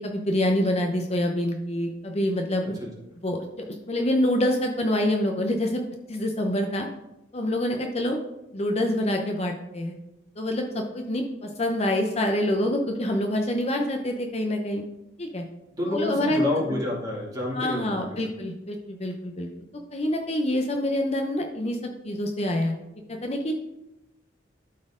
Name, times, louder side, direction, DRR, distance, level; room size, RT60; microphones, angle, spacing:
voice 1, 0.0-2.7 3.2-5.8 6.1-6.9 7.3-8.2 8.5-9.9 10.4-14.8 15.2-15.4 15.9-16.5 17.5-19.5 19.9-21.8 22.0-22.8 23.1-23.6, left 1 dB, 35° left, 3 dB, 0.7 m, -26 dB
voice 2, 15.7-18.2, left 2 dB, 20° right, -3 dB, 2.4 m, -29 dB
12.5 x 4.3 x 3.8 m, 0.90 s
head